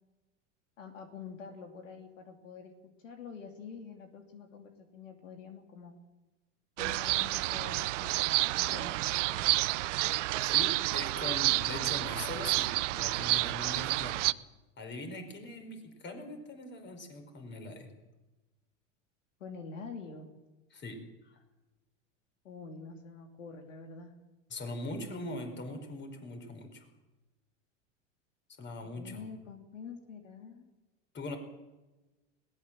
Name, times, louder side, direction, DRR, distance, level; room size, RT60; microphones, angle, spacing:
voice 1, 0.8-2.7 3.0-5.9 6.8-9.7 19.4-20.3 22.4-24.1 28.8-30.7, left 5 dB, 85° left, 5 dB, 3.0 m, -47 dB
sound 1, 6.8-14.3, right 18 dB, 70° right, 0.8 m, -30 dB
voice 2, 10.4-14.3 14.8-17.9 20.7-21.0 21.2-21.4 24.5-26.9 28.6-29.2 31.1-31.4, left 2 dB, 30° left, 5 dB, 5.1 m, -41 dB
21.0 x 18.0 x 7.6 m, 1.1 s
hypercardioid pair, 100°, 37 cm